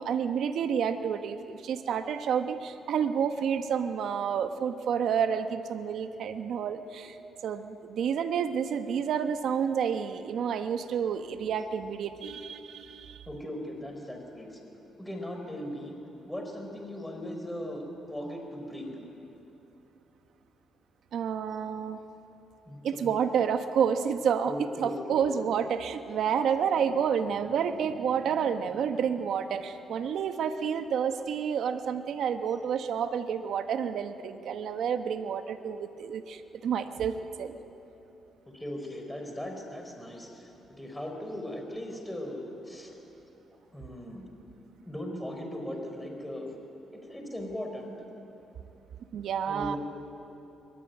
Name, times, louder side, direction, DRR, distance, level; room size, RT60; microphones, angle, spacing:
voice 1, 0.0-7.2 7.4-13.3 21.1-22.0 22.8-37.5 49.1-49.8, right 7 dB, 70° right, 8 dB, 1.3 m, -29 dB
voice 2, 13.3-14.6 15.0-15.9 16.3-19.0 22.7-23.1 24.4-25.6 38.5-40.5 40.8-43.0 43.7-44.2 44.9-46.5 46.9-47.9 49.5-49.8, left 1 dB, 5° left, 2 dB, 4.7 m, -38 dB
23.5 x 22.0 x 9.5 m, 3.0 s
cardioid pair, 90°, 0 cm